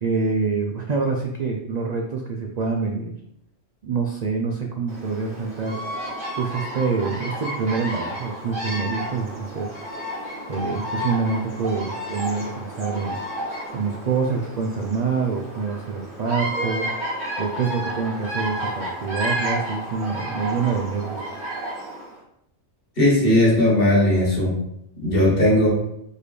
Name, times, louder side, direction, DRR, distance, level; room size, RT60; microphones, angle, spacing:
voice 1, 0.0-3.1 3.8-5.8 6.4-9.7 10.5-13.2 13.7-16.9 17.4-21.2, right 5 dB, 80° right, 2 dB, 0.3 m, -26 dB
Bird vocalization bird call bird song, 4.9-22.1, right 1 dB, 60° right, 2.2 m, -31 dB
voice 2, 23.0-24.6 25.0-25.7, left 1 dB, 50° left, -4 dB, 1.4 m, -17 dB
4.4 x 3.4 x 3.2 m, 0.79 s
omnidirectional pair, 1.3 m